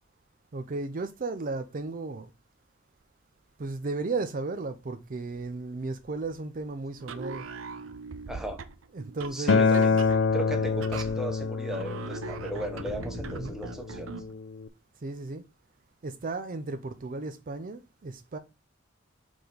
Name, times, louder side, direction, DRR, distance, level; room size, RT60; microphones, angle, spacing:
voice 1, 0.5-2.3 3.6-7.5 8.9-10.1 13.3-13.6 15.0-15.4 16.0-18.4, right 3 dB, 45° right, 0.5 m, -35 dB
sound 1, 7.0-14.3, right 4 dB, 90° right, 0.7 m, -40 dB
voice 2, 8.3-8.6 9.3-10.0 10.3-14.1, right 1 dB, 5° right, 1.2 m, -36 dB
Acoustic guitar, 9.5-14.7, left 5 dB, 65° left, 0.5 m, -27 dB
4.8 x 3.9 x 5.1 m
head